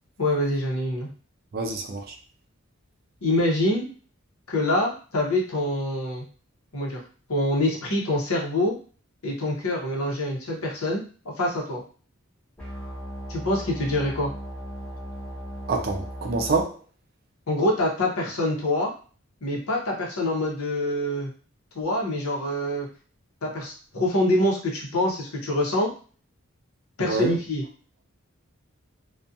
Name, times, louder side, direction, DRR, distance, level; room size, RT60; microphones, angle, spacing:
voice 1, 0.2-1.1 3.2-3.9 4.5-6.2 6.7-7.0 7.3-8.7 9.2-11.8 13.3-14.3 17.5-18.9 19.4-21.3 21.7-22.9 23.4-25.9 27.0-27.6, left 1 dB, 85° left, -1 dB, 0.8 m, -25 dB
voice 2, 1.5-2.1 15.7-16.8 27.0-27.3, right 3 dB, 45° right, 4 dB, 0.4 m, -26 dB
sound 1, 12.6-16.6, equal, 5° left, 0.8 m, -37 dB
2.4 x 2.3 x 2.6 m, 0.39 s
head